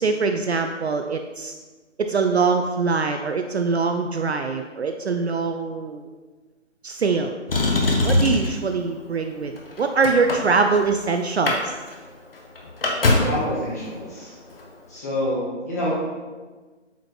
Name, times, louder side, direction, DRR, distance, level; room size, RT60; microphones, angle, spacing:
voice 1, 0.0-1.5 2.0-6.1 6.8-7.4 8.0-11.7, right 4 dB, 60° right, 6 dB, 0.6 m, -23 dB
Motor vehicle (road), 7.5-8.6 9.4-11.0 11.3-11.6 11.9-12.0 12.3-13.4 14.5-14.6, left 2 dB, 50° left, 1.4 m, -21 dB
voice 2, 13.2-14.4 14.9-15.9, left 1 dB, 15° left, -7 dB, 1.1 m, -27 dB
8.0 x 4.6 x 4.5 m, 1.3 s
figure-of-eight pair, 165°, 37 cm